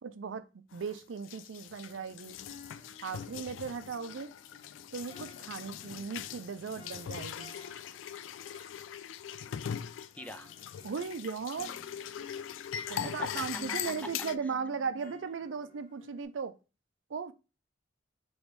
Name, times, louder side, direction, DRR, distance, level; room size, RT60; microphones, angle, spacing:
voice 1, 0.0-2.4 3.0-4.3 4.9-7.6 10.8-11.7 12.9-16.5 17.1-17.3, right 5 dB, 80° right, 0.5 m, -37 dB
sound 1, 0.7-14.4, left 9 dB, 80° left, 0.3 m, -41 dB
sound 2, 2.4-8.9 9.2-16.2, equal, 30° left, 1.8 m, -55 dB
voice 2, 10.2-10.5 12.9-13.9, left 1 dB, 10° left, 0.4 m, -44 dB
5.1 x 3.1 x 3.1 m
head